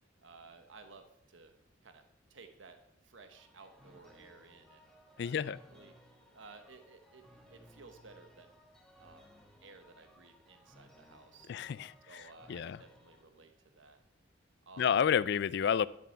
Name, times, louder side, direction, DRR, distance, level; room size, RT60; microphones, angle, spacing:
voice 1, 0.2-1.5 1.8-2.0 2.3-5.9 6.3-8.6 9.0-9.3 9.6-11.5 12.1-14.0 14.7-14.9, right 4 dB, 80° right, 7 dB, 1.0 m, -56 dB
sound 1, 3.3-13.2, equal, 5° left, 1.3 m, -61 dB
voice 2, 5.2-5.6 11.5-12.2 12.5-12.8 14.8-15.9, left 8 dB, 60° left, 20 dB, 0.4 m, -30 dB
11.5 x 7.4 x 5.7 m, 0.82 s
head